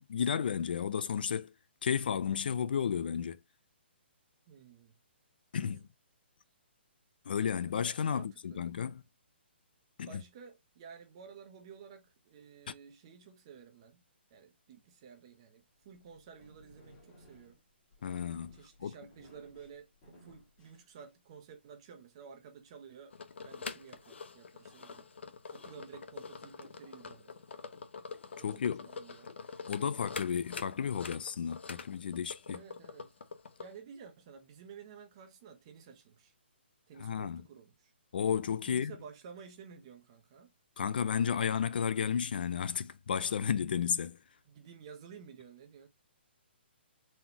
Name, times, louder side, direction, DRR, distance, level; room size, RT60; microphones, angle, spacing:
voice 1, 0.0-1.5 1.8-3.4 5.5-5.8 7.3-9.0 10.0-10.2 18.0-18.9 28.4-28.9 29.7-32.6 37.0-37.4 38.1-38.9 40.8-44.2, left 7 dB, 55° left, 0.4 m, -33 dB
voice 2, 4.5-5.0 5.5-5.7 8.1-8.6 10.0-14.0 14.3-17.6 18.5-23.2 23.4-25.1 25.5-27.9 28.4-29.4 32.5-33.1 33.6-36.3 36.9-37.9 38.7-40.5 44.4-45.9, right 6 dB, 30° right, 0.8 m, -53 dB
sound 1, 15.8-21.4, left 1 dB, 25° left, 2.1 m, -60 dB
sound 2, 23.1-33.7, left 5 dB, 75° left, 0.9 m, -46 dB
4.2 x 3.8 x 2.8 m
hypercardioid pair, 170°, 6 cm